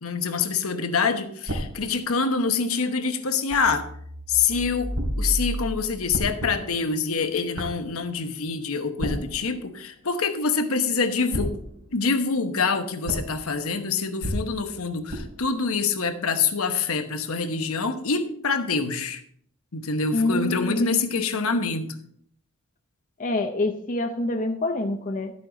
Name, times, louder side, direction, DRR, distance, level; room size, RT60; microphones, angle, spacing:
voice 1, 0.0-3.9 4.3-11.6 11.9-19.2 19.7-21.9, left 5 dB, 70° left, 8 dB, 1.0 m, -26 dB
sound 1, 1.5-3.4 4.9-11.0 11.3-16.8, equal, 75° right, 3.0 m, -36 dB
sound 2, 3.5-6.7, equal, 45° right, 1.4 m, -33 dB
voice 2, 20.1-21.1 23.2-25.3, left 2 dB, 40° left, 5 dB, 0.6 m, -26 dB
12.0 x 8.5 x 3.9 m, 0.66 s
head